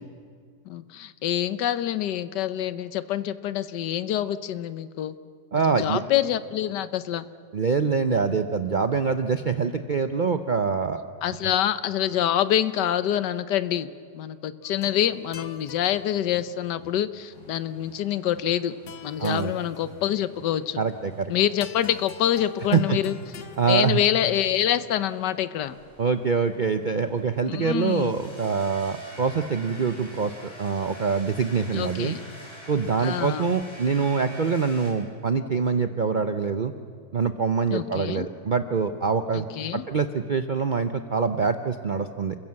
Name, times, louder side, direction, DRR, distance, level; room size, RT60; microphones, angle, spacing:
voice 1, 0.7-5.1 5.6-7.2 11.2-13.9 14.1-18.8 19.0-20.8 21.3-23.1 23.7-25.7 27.5-28.1 31.7-32.2 33.0-33.5 37.7-38.3 39.3-39.8, left 11 dB, 75° left, 14 dB, 1.4 m, -26 dB
voice 2, 5.5-6.0 7.5-11.0 19.2-19.5 20.8-21.3 22.7-23.0 23.6-24.0 26.0-32.2 32.7-36.7 37.1-39.5 39.7-42.4, right 5 dB, 75° right, 9 dB, 0.4 m, -25 dB
sound 1, 14.6-24.7, left 5 dB, 50° left, 1.2 m, -46 dB
sound 2, 17.3-34.9, equal, 15° left, 4.3 m, -48 dB
28.5 x 15.5 x 7.6 m, 2.1 s
omnidirectional pair, 1.9 m